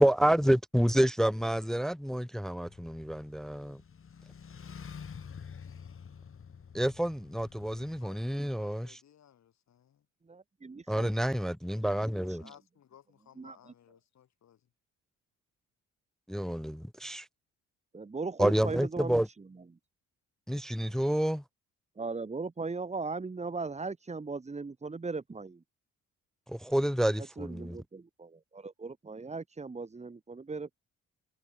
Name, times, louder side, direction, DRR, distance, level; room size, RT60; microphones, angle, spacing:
voice 1, 0.0-3.8 6.7-9.0 10.9-12.4 16.3-17.3 18.4-19.3 20.5-21.4 26.5-27.8, right 1 dB, ahead, 0.6 m, -28 dB
sound 1, 2.6-8.0, left 6 dB, 45° left, 7.1 m, -48 dB
voice 2, 7.7-10.1 11.9-14.6, left 10 dB, 65° left, 5.6 m, -59 dB
voice 3, 10.3-11.1 12.3-12.5 13.4-13.7 17.9-19.6 22.0-25.6 27.2-30.8, right 4 dB, 20° right, 1.9 m, -38 dB
cardioid pair, 90°, 30 cm